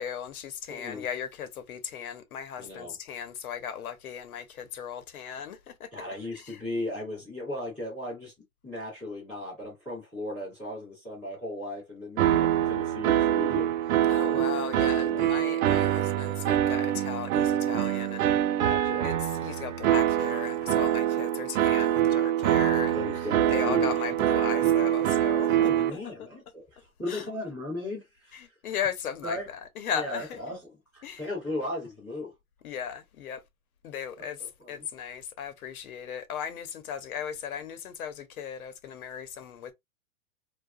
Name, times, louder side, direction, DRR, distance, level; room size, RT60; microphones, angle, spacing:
voice 1, 0.0-5.9 6.3-6.6 14.1-18.4 19.0-25.6 25.9-26.3 27.1-27.3 28.3-30.5 31.0-31.3 32.6-33.4 33.8-39.7, left 8 dB, 90° left, 0.8 m, -37 dB
voice 2, 0.7-1.0 2.6-2.9 5.9-8.3 8.6-13.7 15.0-15.3 18.6-19.1 22.9-23.9 25.5-28.5 29.2-29.5 29.9-32.3 34.2-34.3 34.6-34.8, left 1 dB, ahead, 0.5 m, -36 dB
sound 1, 12.2-25.9, right 12 dB, 70° right, 0.5 m, -25 dB
2.8 x 2.3 x 2.3 m
supercardioid pair, 175°, 42 cm